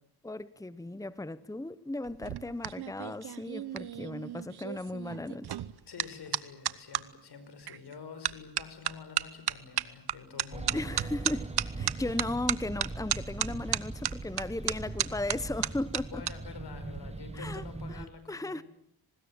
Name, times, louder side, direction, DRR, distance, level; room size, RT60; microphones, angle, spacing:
voice 1, 0.2-5.6 10.7-16.2 17.3-17.6 17.9-18.6, left 2 dB, 10° left, 1.1 m, -36 dB
sound 1, 2.0-7.0 7.7-7.9 8.2-16.3 16.6-17.0, right 11 dB, 80° right, 1.1 m, -34 dB
voice 2, 5.9-10.9 12.0-12.4 16.1-18.6, left 5 dB, 80° left, 5.4 m, -47 dB
sound 2, 10.5-18.1, right 2 dB, 15° right, 1.8 m, -40 dB
24.0 x 20.5 x 9.0 m
cardioid pair, 60°, 39 cm